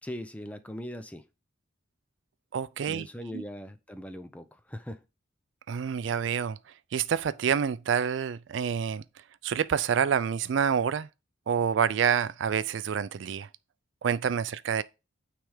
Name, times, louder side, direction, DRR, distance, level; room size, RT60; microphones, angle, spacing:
voice 1, 0.0-1.3 2.8-5.0, equal, 5° left, 0.5 m, -40 dB
voice 2, 2.5-3.1 3.3-3.4 5.7-6.6 6.9-9.0 9.4-11.1 11.5-13.5 14.0-14.8, right 7 dB, 70° right, 0.4 m, -27 dB
9.2 x 3.4 x 4.9 m
head